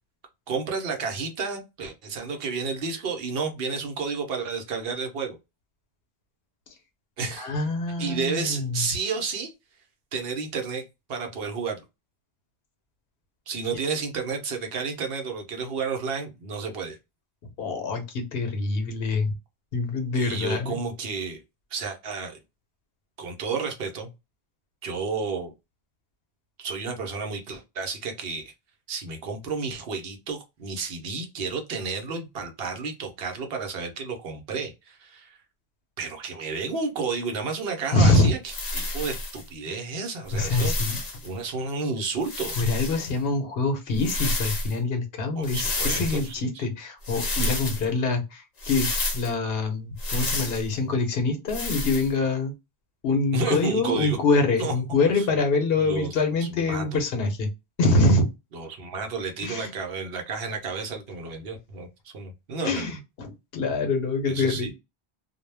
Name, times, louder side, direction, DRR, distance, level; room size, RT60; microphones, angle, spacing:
voice 1, 0.5-5.4 7.2-7.6 8.0-9.5 10.1-10.8 11.1-11.8 13.5-17.0 20.1-21.4 21.7-22.4 23.2-24.1 24.8-25.5 26.6-28.5 28.9-35.4 36.0-42.5 45.3-46.7 53.3-54.2 54.6-54.7 55.1-55.3 55.8-57.0 58.5-62.9 64.3-64.7, right 4 dB, 70° right, 0.9 m, -31 dB
voice 2, 7.4-8.8 17.6-19.3 19.7-20.8 37.9-38.3 39.7-39.8 40.3-41.0 42.6-48.2 48.7-48.9 49.1-52.5 53.0-57.5 57.8-58.2 59.4-59.7 62.6-64.7, left 3 dB, 70° left, 0.9 m, -25 dB
sound 1, 38.5-39.4 40.3-41.3 42.2-43.1 43.9-44.7 45.4-46.3 47.0-47.8 48.6-49.3 50.0-50.7 51.5-52.1, left 2 dB, 45° left, 0.7 m, -30 dB
2.2 x 2.1 x 3.2 m
omnidirectional pair, 1.0 m